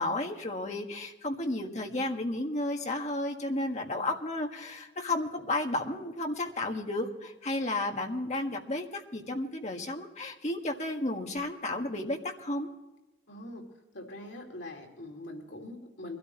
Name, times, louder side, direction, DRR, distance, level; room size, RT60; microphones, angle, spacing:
voice 1, 0.0-12.7, left 2 dB, 40° left, 2 dB, 1.5 m, -32 dB
voice 2, 13.3-13.6 13.9-16.2, left 1 dB, 80° left, 2 dB, 2.7 m, -43 dB
23.0 x 13.0 x 3.1 m, 1.0 s
head